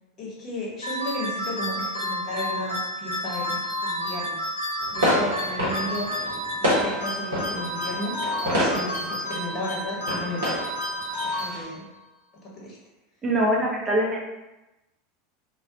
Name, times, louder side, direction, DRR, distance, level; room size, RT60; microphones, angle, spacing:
voice 1, 0.2-4.4 4.9-6.1 6.6-8.1 8.4-10.5 11.2-11.9 12.4-12.8 13.5-13.7, left 1 dB, 40° left, -4 dB, 0.9 m, -34 dB
sound 1, 0.8-12.0, left 1 dB, 85° left, 0.6 m, -31 dB
sound 2, 4.8-11.6, equal, 75° right, 0.9 m, -28 dB
voice 2, 13.2-14.3, right 1 dB, 25° right, -2 dB, 0.7 m, -23 dB
2.2 x 2.2 x 2.6 m, 1.0 s
figure-of-eight pair, 80°, 0 cm